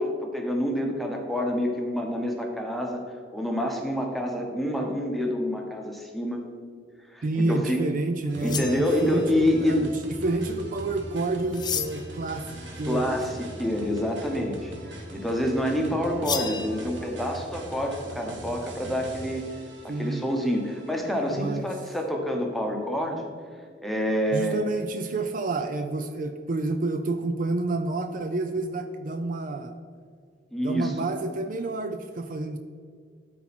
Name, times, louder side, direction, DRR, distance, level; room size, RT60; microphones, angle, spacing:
voice 1, 0.0-3.0 3.3-6.4 7.1-7.8 8.4-9.9 12.9-19.4 19.8-23.3 23.8-24.6 30.5-30.9, equal, ahead, 1 dB, 1.0 m, -27 dB
voice 2, 7.2-9.9 10.2-13.2 19.9-20.3 21.3-21.7 24.3-29.7 30.6-32.6, right 2 dB, 45° right, 7 dB, 0.4 m, -29 dB
sound 1, 8.3-21.8, right 1 dB, 80° right, 1.3 m, -41 dB
sound 2, 8.4-9.3 11.5-12.2 16.2-16.7, left 7 dB, 25° left, 0.4 m, -32 dB
12.5 x 4.2 x 4.3 m, 2.1 s
head